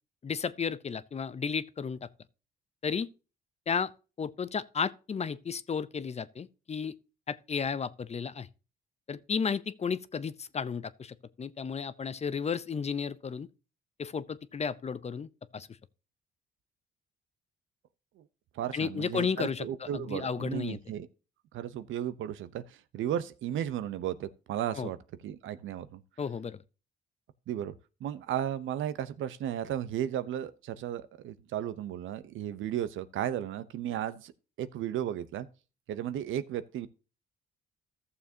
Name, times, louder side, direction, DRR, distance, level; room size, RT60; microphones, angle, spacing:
voice 1, 0.2-2.1 2.8-3.1 3.7-3.9 4.2-6.9 7.3-8.5 9.1-13.5 14.0-15.7 18.7-20.8 24.8-24.9 26.2-26.6, left 6 dB, 35° left, 0.6 m, -33 dB
voice 2, 18.5-21.1 21.5-25.0 25.2-26.0 27.5-27.7 28.0-34.3 34.6-35.5 35.9-36.9, right 10 dB, 80° right, 0.8 m, -34 dB
14.5 x 7.0 x 2.8 m
cardioid pair, 90°, 20 cm